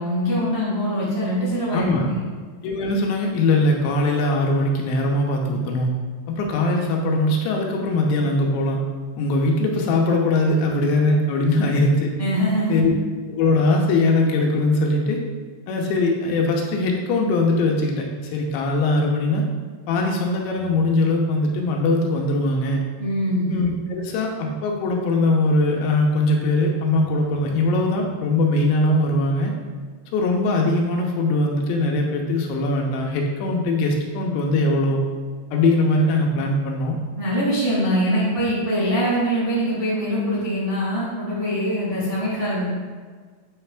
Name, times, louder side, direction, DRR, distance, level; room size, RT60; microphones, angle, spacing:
voice 1, 0.0-2.2 12.2-12.8 23.0-23.5 37.2-42.7, equal, 45° right, -9 dB, 0.8 m, -23 dB
voice 2, 1.7-2.1 2.6-5.9 6.3-8.8 9.2-12.1 12.7-12.9 13.3-15.2 15.7-18.0 18.3-19.4 19.9-22.8 23.5-29.5 30.1-35.0 35.5-37.0, left 2 dB, 85° left, 0 dB, 3.0 m, -21 dB
8.8 x 3.3 x 4.7 m, 1.5 s
omnidirectional pair, 5.2 m